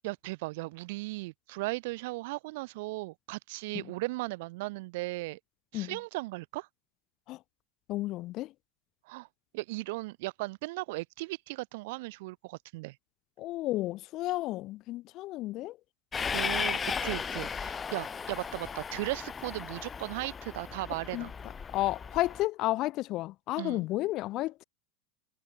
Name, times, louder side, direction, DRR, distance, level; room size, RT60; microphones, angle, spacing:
voice 1, 0.0-5.4 5.7-6.7 9.1-9.3 9.5-13.0 16.3-21.3 23.6-23.8, right 22 dB, 70° right, 5.3 m, -37 dB
voice 2, 7.9-8.5 13.4-15.8 21.1-21.3 21.7-24.6, left 17 dB, 50° left, 1.3 m, -32 dB
Train, 16.1-22.4, left 6 dB, 25° left, 1.0 m, -36 dB
hypercardioid pair, 105°, 0 cm